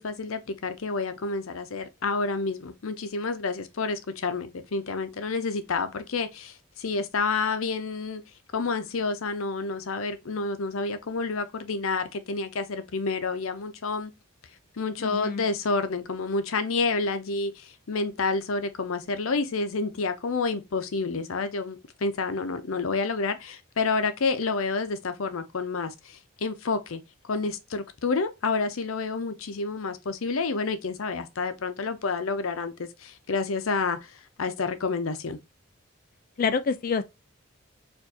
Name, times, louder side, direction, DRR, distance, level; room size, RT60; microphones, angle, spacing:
voice 1, 0.0-8.2 8.5-14.1 14.8-34.1 34.4-35.4, left 4 dB, 85° left, 0.6 m, -29 dB
voice 2, 15.0-15.4 36.4-37.0, left 5 dB, 40° left, 0.3 m, -27 dB
4.5 x 2.6 x 2.7 m
head